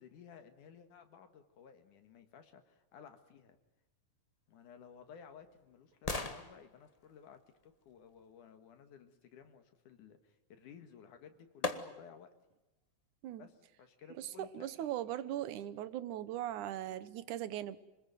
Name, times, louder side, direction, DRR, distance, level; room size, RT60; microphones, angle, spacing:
voice 1, 0.0-3.6 4.5-12.3 13.4-14.7, left 7 dB, 80° left, 7 dB, 3.2 m, -56 dB
sound 1, 4.5-8.6 10.7-10.8 11.6-12.3 12.8-12.9, left 3 dB, 40° left, 0.5 m, -43 dB
voice 2, 14.2-17.8, right 12 dB, 75° right, 15 dB, 2.5 m, -39 dB
27.0 x 20.5 x 9.3 m, 1.0 s
omnidirectional pair, 3.6 m